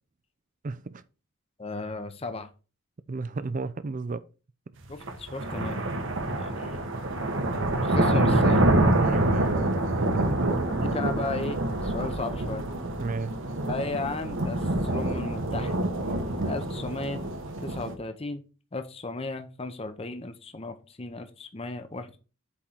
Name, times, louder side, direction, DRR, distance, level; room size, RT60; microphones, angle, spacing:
voice 1, 0.6-1.0 3.1-4.2 8.9-9.7 10.0-10.5 13.0-13.3, right 3 dB, 35° right, 0.4 m, -33 dB
voice 2, 1.6-2.5 4.9-5.9 6.3-6.8 7.8-8.6 10.8-12.7 13.7-15.8 16.4-17.2 17.6-18.4 18.7-22.2, left 3 dB, 25° left, 0.7 m, -35 dB
sound 1, 4.9-17.9, right 1 dB, 60° right, 1.1 m, -26 dB
8.3 x 3.8 x 4.4 m
head